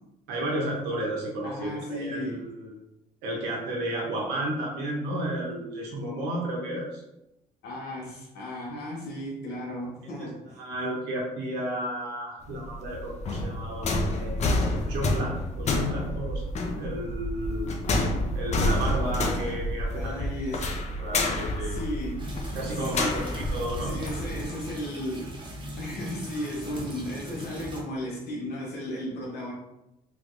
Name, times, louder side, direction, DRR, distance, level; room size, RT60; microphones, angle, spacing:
voice 1, 0.3-2.7 3.2-7.0 9.7-9.8 10.2-10.3 10.6-16.5 16.8-17.7 18.3-20.2 21.0-21.8 22.5-24.0, right 1 dB, 90° right, -1 dB, 0.8 m, -32 dB
voice 2, 1.4-2.4 7.6-10.6 19.9-20.8 21.6-22.4 22.9-23.3 23.8-25.3 25.8-29.5, left 1 dB, 75° left, -3 dB, 0.9 m, -35 dB
sound 1, 12.4-24.4, left 1 dB, 40° left, 0.6 m, -29 dB
sound 2, 22.2-27.8, right 1 dB, 30° right, 0.8 m, -39 dB
3.3 x 3.2 x 2.5 m, 0.90 s
cardioid pair, 110°, 17 cm